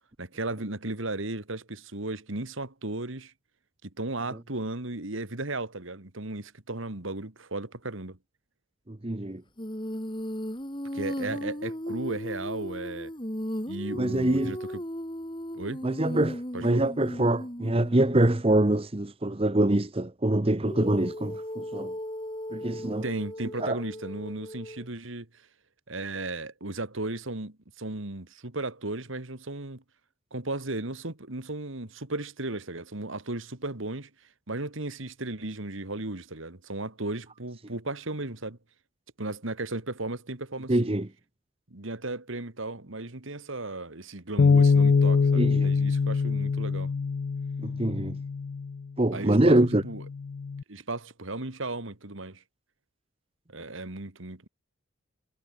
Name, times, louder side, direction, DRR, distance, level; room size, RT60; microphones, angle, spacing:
voice 1, 0.2-3.3 3.8-8.2 10.9-13.1 13.7-14.8 15.5-15.8 16.5-16.8 23.0-25.5 25.9-29.8 30.3-34.1 34.5-38.6 39.2-40.9 41.7-46.9 49.1-50.0 50.7-52.4 53.5-54.5, right 2 dB, 75° right, 2.3 m, -35 dB
voice 2, 8.9-9.4 14.0-14.5 15.8-21.9 22.5-23.0 23.6-23.8 40.7-41.1 45.3-45.7 47.6-48.2 49.0-49.8, right 1 dB, 25° right, 0.9 m, -25 dB
Female singing, 9.6-18.5 20.7-24.9, equal, 25° left, 3.8 m, -36 dB
Bass guitar, 44.4-48.8 49.5-50.6, left 5 dB, 50° left, 0.3 m, -24 dB
head